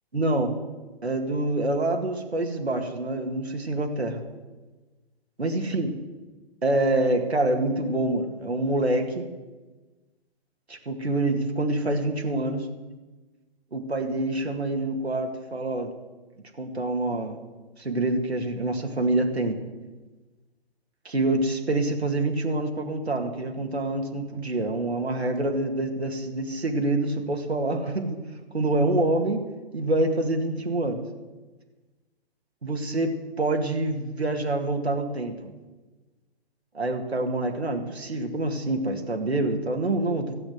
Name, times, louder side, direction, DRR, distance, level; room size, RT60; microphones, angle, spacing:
voice 1, 0.1-0.5 1.0-4.2 5.4-5.9 6.6-9.3 10.7-12.7 13.7-15.9 16.6-17.4 17.8-19.6 21.0-28.2 28.5-29.5 29.7-31.0 32.6-33.1 33.4-35.5 36.7-40.3, right 2 dB, 90° right, 3 dB, 2.1 m, -26 dB
13.0 x 8.1 x 9.4 m, 1.2 s
figure-of-eight pair, 125°, 31 cm